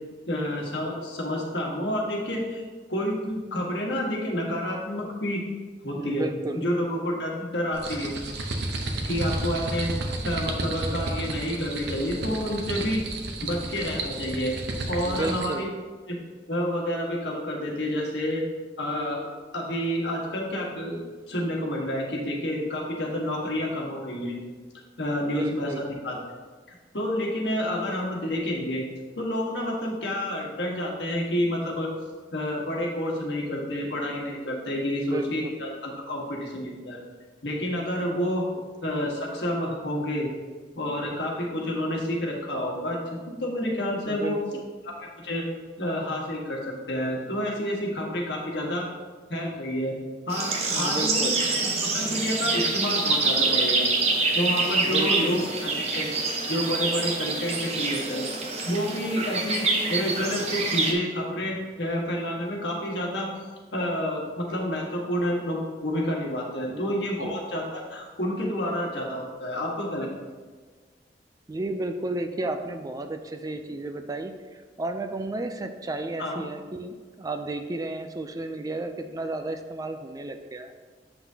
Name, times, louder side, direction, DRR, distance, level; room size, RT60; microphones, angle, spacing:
voice 1, 0.3-2.6 2.9-5.4 5.8-6.3 6.5-8.1 9.0-9.9 10.2-13.0 13.4-14.5 14.9-15.7 16.1-16.2 16.5-18.4 18.8-19.2 19.5-21.0 21.3-24.3 25.0-26.2 26.7-28.8 29.2-31.9 32.3-37.0 37.4-38.5 38.8-40.3 40.7-44.4 44.8-45.5 45.8-48.9 49.3-49.9 50.3-53.9 54.3-56.1 56.5-58.3 58.7-63.3 63.7-70.1 76.2-76.4, equal, 70° left, -2 dB, 1.4 m, -29 dB
voice 2, 6.0-6.6 15.0-15.7 25.2-25.8 34.9-35.3 44.1-44.6 50.7-51.4 54.8-55.3 66.7-66.8 67.2-67.4 71.5-80.7, right 2 dB, 20° right, 7 dB, 0.3 m, -33 dB
sound 1, 7.7-15.6, right 2 dB, 70° right, 0.8 m, -32 dB
sound 2, 50.3-60.9, right 3 dB, 40° right, 0.8 m, -26 dB
7.8 x 5.9 x 2.8 m, 1.4 s
head